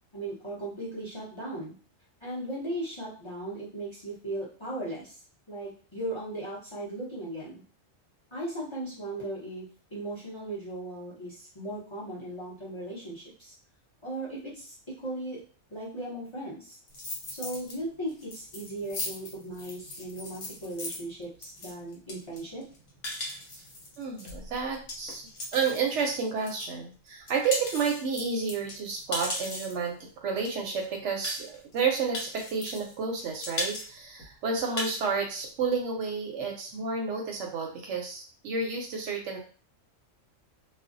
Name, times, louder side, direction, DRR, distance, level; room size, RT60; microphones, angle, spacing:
voice 1, 0.1-1.8 2.2-5.2 5.5-7.6 8.3-9.6 9.9-13.5 14.0-15.4 15.7-16.8 17.3-22.6, right 1 dB, 25° left, -7 dB, 0.8 m, -37 dB
sound 1, 16.9-17.7 18.1-26.7 27.1-29.9 30.5-30.6 30.8-30.9 31.2-31.8 32.1-32.9 33.2-33.9 34.2-34.3 34.6-35.0, left 1 dB, 80° left, 1.1 m, -37 dB
voice 2, 24.0-39.4, right 5 dB, 70° right, 2 dB, 0.8 m, -31 dB
2.4 x 2.2 x 2.5 m, 0.40 s
omnidirectional pair, 1.3 m